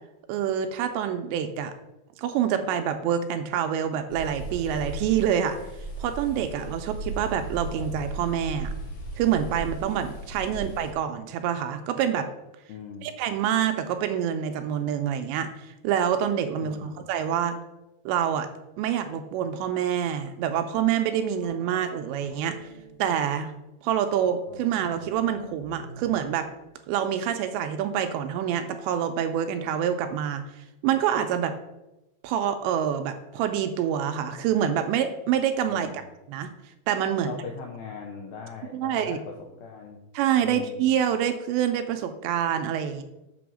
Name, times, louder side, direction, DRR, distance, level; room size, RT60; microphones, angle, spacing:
voice 1, 0.3-1.7 2.2-5.6 6.0-8.7 9.1-12.3 13.0-17.6 18.1-18.5 18.8-22.6 23.0-23.5 23.8-26.5 26.9-30.4 30.8-31.5 32.2-36.0 36.3-36.5 36.9-37.3 38.7-39.2 40.1-43.0, right 9 dB, 85° right, 7 dB, 2.7 m, -26 dB
sound 1, 4.1-10.9, right 1 dB, 55° left, 2.3 m, -36 dB
voice 2, 12.7-13.1 16.6-17.0 35.7-36.1 37.2-39.3 39.6-40.0 40.4-40.9, left 6 dB, 80° left, 1 dB, 2.1 m, -40 dB
sound 2, 21.4-23.6 24.4-27.7, right 2 dB, 50° right, 0.5 m, -47 dB
6.9 x 6.0 x 6.1 m, 0.97 s
omnidirectional pair, 5.3 m